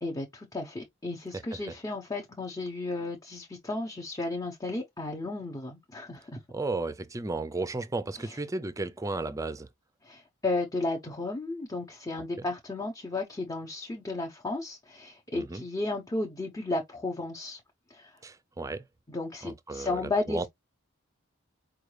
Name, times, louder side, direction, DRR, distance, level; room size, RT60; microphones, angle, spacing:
voice 1, 0.0-6.4 8.2-8.3 10.0-17.6 17.9-18.1 19.1-20.5, left 2 dB, 15° left, 0.8 m, -34 dB
voice 2, 6.5-9.7 12.4-12.5 15.4-15.6 18.2-18.8 19.4-20.5, right 2 dB, 15° right, 0.4 m, -34 dB
4.9 x 2.3 x 3.2 m
head